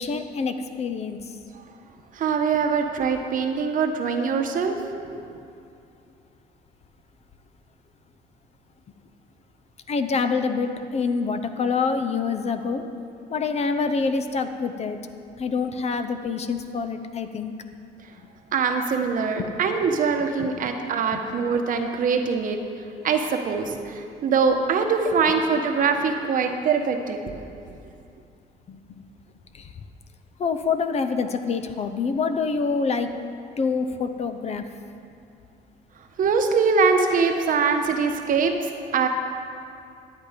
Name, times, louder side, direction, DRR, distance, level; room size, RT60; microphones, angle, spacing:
voice 1, 0.0-1.4 9.9-12.8 13.3-15.0 15.4-17.5 19.4-19.5 20.4-20.5 21.1-21.2 28.7-29.1 29.5-29.7 30.4-33.1 33.6-34.6, left 5 dB, 40° left, 9 dB, 0.7 m, -26 dB
voice 2, 2.1-4.8 5.3-5.4 18.5-22.6 23.0-27.2 36.2-39.1, right 5 dB, 55° right, 5 dB, 1.1 m, -23 dB
11.5 x 8.6 x 5.1 m, 2.5 s
cardioid pair, 110°, 17 cm